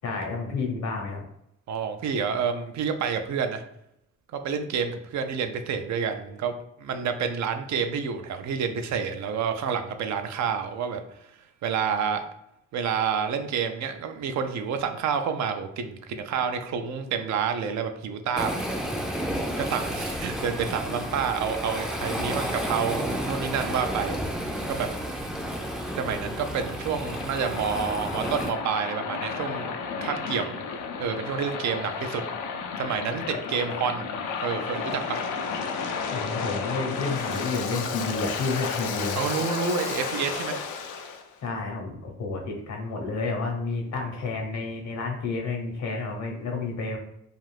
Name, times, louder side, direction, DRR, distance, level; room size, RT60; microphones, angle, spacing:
voice 1, 0.0-1.2 36.1-39.2 41.4-47.0, left 3 dB, 65° left, 1 dB, 0.8 m, -30 dB
voice 2, 1.7-3.6 4.3-6.5 6.8-11.0 11.6-12.3 12.7-18.6 19.6-24.2 24.7-24.9 26.0-29.7 30.0-30.5 31.0-32.2 32.8-34.1 34.4-35.2 39.2-40.6, right 6 dB, 65° right, 7 dB, 0.4 m, -29 dB
Waves surf, 18.4-28.5, equal, ahead, 0.4 m, -31 dB
Waves surf 2, 25.4-41.2, left 5 dB, 85° left, 0.5 m, -33 dB
2.4 x 2.4 x 3.2 m, 0.79 s
cardioid pair, 90°, 30 cm